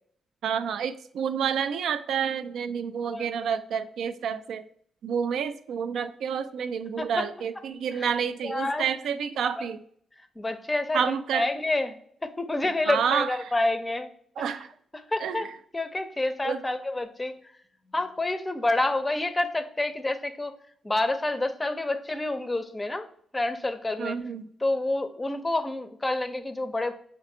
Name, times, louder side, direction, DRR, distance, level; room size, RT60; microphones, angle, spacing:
voice 1, 0.4-4.6 5.0-9.8 10.9-11.5 12.9-13.4 14.4-14.7 15.2-15.4 16.4-16.6 24.0-24.5, right 7 dB, 75° right, 11 dB, 0.3 m, -29 dB
voice 2, 8.4-8.9 10.2-11.0 11.3-14.1 14.4-14.5 14.9-15.5 15.7-17.5 17.9-20.5 20.8-24.2 24.6-26.9, left 2 dB, 15° left, 9 dB, 0.5 m, -28 dB
5.1 x 2.5 x 2.7 m, 0.63 s
cardioid pair, 90°, 0 cm